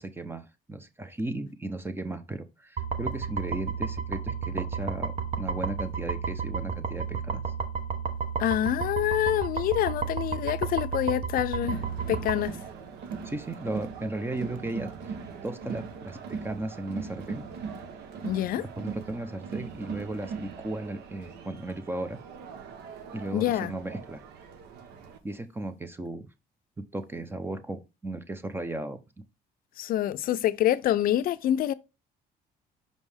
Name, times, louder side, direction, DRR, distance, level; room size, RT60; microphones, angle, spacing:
voice 1, 0.0-7.4 13.2-14.9 15.4-17.4 18.6-22.2 23.1-24.2 25.2-26.3 26.8-29.0, right 2 dB, 15° right, 0.6 m, -35 dB
sound 1, 2.8-12.4, right 6 dB, 40° right, 0.9 m, -32 dB
voice 2, 8.4-11.8 12.1-12.6 18.2-18.7 23.3-23.7 29.8-31.7, left 12 dB, 60° left, 0.5 m, -26 dB
Crowd, 11.6-25.2, right 5 dB, 75° right, 1.0 m, -40 dB
5.3 x 5.3 x 3.4 m
cardioid pair, 110°, 17 cm